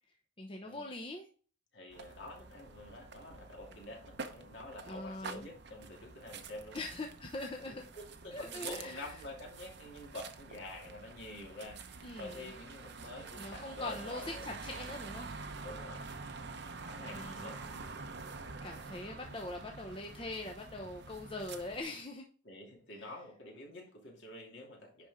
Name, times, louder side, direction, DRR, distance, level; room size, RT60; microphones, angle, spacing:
voice 1, 0.4-1.3 4.8-5.5 6.7-7.8 8.3-9.2 12.0-12.5 13.3-15.3 17.0-17.5 18.6-22.2 23.0-23.1, left 2 dB, 25° left, 1 dB, 0.8 m, -42 dB
voice 2, 1.7-6.8 7.7-14.4 15.6-16.0 16.9-17.6 22.4-25.1, left 2 dB, 60° left, -1 dB, 2.7 m, -48 dB
sound 1, 1.9-21.8, right 4 dB, 55° right, 0.8 m, -47 dB
10.5 x 4.5 x 3.6 m, 0.40 s
head